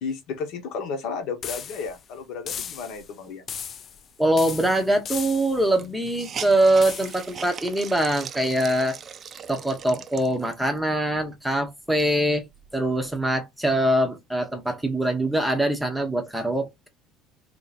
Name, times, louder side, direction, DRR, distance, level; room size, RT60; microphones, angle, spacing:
voice 1, 0.0-3.4, left 5 dB, 60° left, 1.2 m, -33 dB
sound 1, 1.4-2.0 2.5-3.1 3.5-4.1 4.4-5.7 6.8-7.3, left 7 dB, 30° left, 0.3 m, -36 dB
voice 2, 4.2-9.0 9.5-12.5 12.7-16.9, right 1 dB, 5° right, 0.8 m, -23 dB
Hiss, 4.9-5.0 5.2-5.3 5.7-10.8 11.3-11.4 11.8-13.2, right 7 dB, 30° right, 0.5 m, -40 dB
3.2 x 2.8 x 4.0 m
cardioid pair, 145°, 0 cm